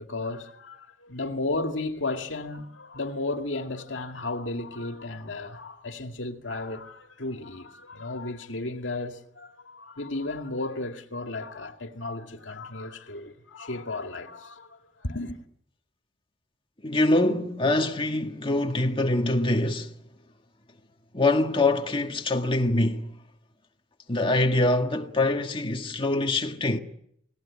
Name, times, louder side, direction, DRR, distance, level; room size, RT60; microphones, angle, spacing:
voice 1, 0.0-15.4, left 2 dB, 75° left, 2.2 m, -34 dB
voice 2, 16.8-20.0 21.1-23.1 24.1-26.8, left 2 dB, 30° left, 1.9 m, -24 dB
29.0 x 19.5 x 8.7 m
head